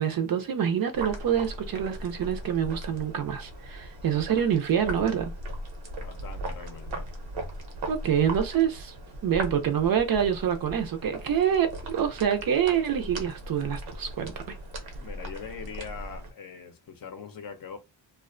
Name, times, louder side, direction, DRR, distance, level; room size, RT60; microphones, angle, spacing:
voice 1, 0.0-5.3 7.9-8.9 9.2-14.6, right 8 dB, 50° right, 0.5 m, -26 dB
sound 1, 0.9-16.3, right 1 dB, 85° right, 0.8 m, -38 dB
voice 2, 6.0-7.1 15.0-17.8, left 6 dB, 50° left, 0.6 m, -42 dB
2.4 x 2.1 x 2.4 m
wide cardioid pair, 140°, 45 cm